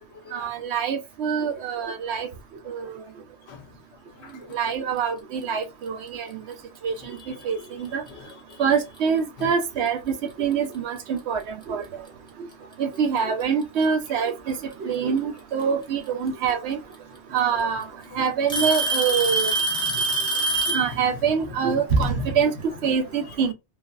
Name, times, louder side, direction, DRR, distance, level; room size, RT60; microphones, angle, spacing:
voice 1, 0.3-2.3 2.7-3.0 4.5-6.5 6.8-8.0 8.6-12.1 12.4-12.5 12.8-16.8 17.3-17.9 18.1-19.5 20.7-23.5, right 6 dB, 75° right, 0.9 m, -25 dB
voice 2, 4.2-4.6 7.0-7.4 7.9-8.4 9.4-9.5 17.5-17.7 18.1-18.3 19.3-19.4 19.7-20.0 20.9-21.1 21.6-22.4 23.2-23.3, left 5 dB, 75° left, 0.9 m, -39 dB
Alarm / Tick-tock, 7.0-7.2 8.1-8.2 9.0-9.1 10.7-10.8 12.1-12.2 13.4-13.9 15.6-15.7 16.9-17.0 17.4-17.8 18.5-20.9, right 3 dB, 5° left, 0.4 m, -24 dB
3.2 x 2.3 x 2.2 m
omnidirectional pair, 1.1 m